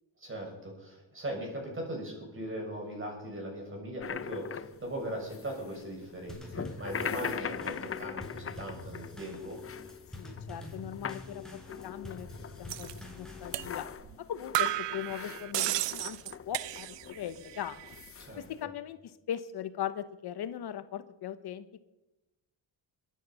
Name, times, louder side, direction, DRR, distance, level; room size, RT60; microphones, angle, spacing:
voice 1, 0.2-9.6 18.2-18.4, right 1 dB, 30° right, 1 dB, 6.9 m, -39 dB
sound 1, 4.0-18.6, left 7 dB, 30° left, 0.7 m, -42 dB
Drum kit / Snare drum / Bass drum, 6.3-14.0, left 3 dB, ahead, 4.5 m, -46 dB
voice 2, 10.1-12.3 12.6-13.9 14.2-16.2 16.5-17.9 18.4-21.8, left 10 dB, 65° left, 12 dB, 1.0 m, -39 dB
sound 2, 12.7-12.9 13.5-13.7 14.0-14.1 14.5-17.2 17.4-18.0, right 16 dB, 75° right, 0.6 m, -33 dB
23.0 x 9.5 x 5.8 m, 1.0 s
cardioid pair, 110°, 43 cm